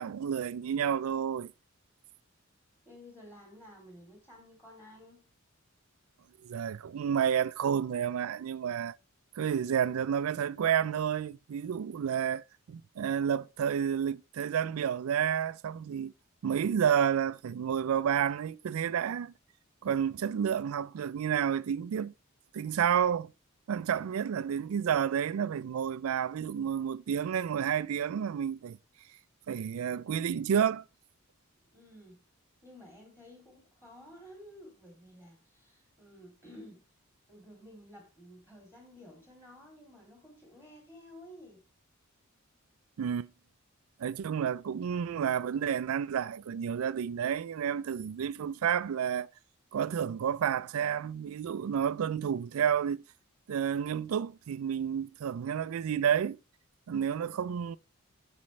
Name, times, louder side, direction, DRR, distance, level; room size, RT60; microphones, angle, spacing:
voice 1, 0.0-1.5 6.4-9.0 9.4-16.1 16.4-19.3 19.8-22.1 22.5-23.3 23.7-28.8 29.5-30.8 43.0-43.3 44.0-49.3 49.7-53.0 53.5-56.4 56.9-57.8, right 8 dB, 80° right, 0.4 m, -30 dB
voice 2, 2.8-5.2 31.7-32.2 32.6-36.8 37.3-41.6 57.2-57.6, equal, 10° left, 2.9 m, -53 dB
12.5 x 4.3 x 3.1 m
head